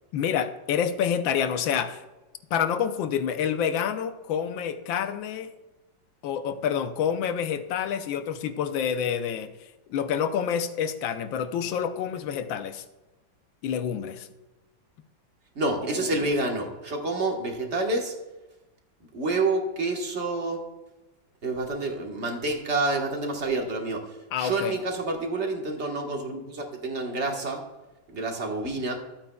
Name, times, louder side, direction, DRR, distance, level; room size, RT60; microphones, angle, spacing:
voice 1, 0.1-2.0 2.5-5.5 6.2-9.5 9.9-12.8 13.6-14.3 24.3-24.8, left 8 dB, 85° left, 9 dB, 1.4 m, -28 dB
voice 2, 15.5-18.1 19.1-20.6 21.4-27.6 28.1-28.9, right 2 dB, 40° right, 1 dB, 1.5 m, -28 dB
13.5 x 8.8 x 2.3 m, 1.1 s
omnidirectional pair, 2.1 m